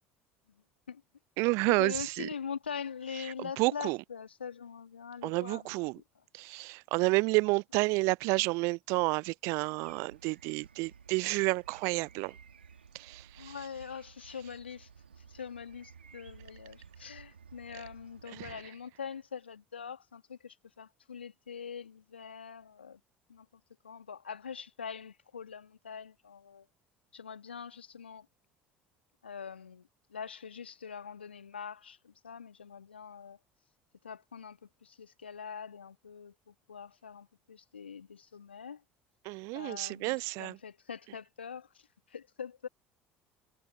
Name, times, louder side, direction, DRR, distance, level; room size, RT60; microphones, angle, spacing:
voice 1, 0.5-1.0 1.7-5.7 13.3-14.9 15.2-23.0 23.3-23.5 23.8-26.7 27.1-28.3 29.2-33.4 34.0-38.8 39.5-42.7, left 7 dB, 85° left, 1.6 m, -43 dB
voice 2, 1.4-2.3 3.2-4.0 5.2-6.0 6.3-12.4 12.9-13.5 18.4-18.5 39.2-40.6, right 27 dB, 55° right, 0.4 m, -30 dB
sound 1, 9.8-18.6, right 6 dB, 85° right, 2.5 m, -55 dB
figure-of-eight pair, 60°, 6 cm